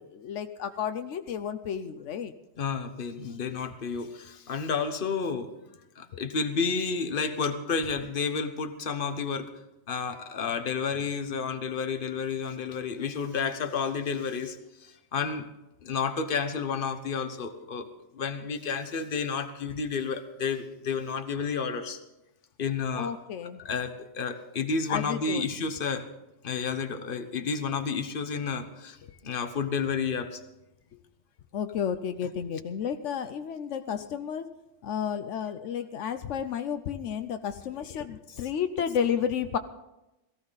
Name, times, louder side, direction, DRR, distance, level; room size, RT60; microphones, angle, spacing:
voice 1, 0.0-2.3 22.9-23.6 24.9-25.5 31.5-34.5 34.8-39.6, left 8 dB, 85° left, 9 dB, 1.1 m, -32 dB
voice 2, 2.6-5.5 6.0-9.5 9.9-15.4 15.8-17.9 18.1-22.0 22.6-23.1 23.6-26.0 26.4-30.4, left 5 dB, 50° left, 9 dB, 1.2 m, -31 dB
18.0 x 15.0 x 4.0 m, 0.94 s
omnidirectional pair, 1.2 m